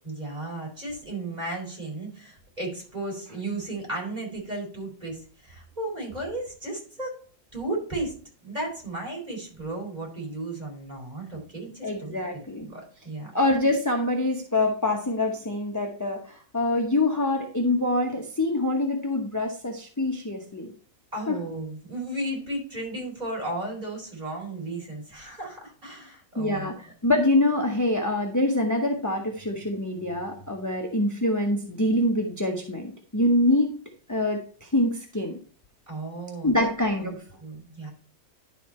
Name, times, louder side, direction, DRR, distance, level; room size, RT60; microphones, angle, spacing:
voice 1, 0.0-7.1 7.5-8.1 8.4-13.3 21.1-26.7 35.9-36.7 37.0-37.9, right 2 dB, 20° right, -2 dB, 4.2 m, -34 dB
voice 2, 11.8-12.7 13.3-20.7 21.3-21.4 26.4-33.7 34.1-35.4 36.4-37.1, left 1 dB, 15° left, 1 dB, 0.6 m, -25 dB
11.5 x 4.2 x 4.3 m, 0.43 s
omnidirectional pair, 2.0 m